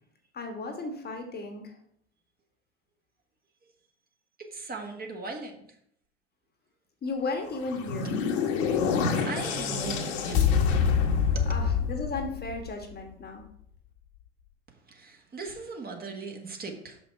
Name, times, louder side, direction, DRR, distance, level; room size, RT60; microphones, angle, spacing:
voice 1, 0.3-1.7 7.0-8.2 11.5-13.4, left 3 dB, 25° left, 4 dB, 1.4 m, -35 dB
voice 2, 4.4-5.5 8.7-10.7 11.3-11.4 14.9-17.0, right 4 dB, 25° right, 3 dB, 1.5 m, -39 dB
sound 1, 7.5-12.8, left 6 dB, 60° left, 1.5 m, -26 dB
6.2 x 5.6 x 4.6 m, 0.69 s
hypercardioid pair, 85°, 37 cm